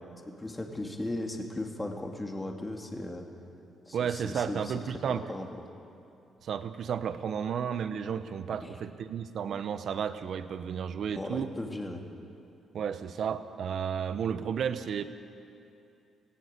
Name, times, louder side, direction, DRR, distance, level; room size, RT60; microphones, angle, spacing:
voice 1, 0.3-3.3 3.9-4.7 5.1-5.5 8.5-8.7 11.1-12.0, left 1 dB, 15° left, 2 dB, 2.5 m, -37 dB
voice 2, 3.9-5.2 6.4-11.5 12.7-15.0, right 7 dB, 60° right, 11 dB, 1.0 m, -32 dB
19.5 x 17.5 x 8.3 m, 2.6 s
cardioid pair, 90°, 0 cm